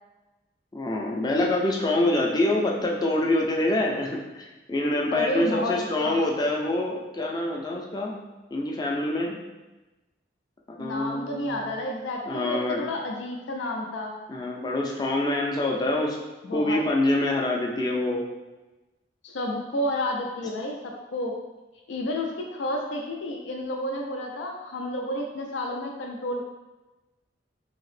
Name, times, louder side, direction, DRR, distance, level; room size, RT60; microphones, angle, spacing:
voice 1, 0.7-8.2 8.5-9.4 10.8-11.6 12.3-12.9 14.3-16.2 16.5-18.2, left 1 dB, 20° left, -1 dB, 0.4 m, -26 dB
voice 2, 5.1-6.2 10.8-14.2 16.4-16.8 19.2-21.3 21.9-26.4, left 1 dB, 90° left, 1 dB, 0.4 m, -31 dB
2.8 x 2.8 x 3.2 m, 1.1 s
head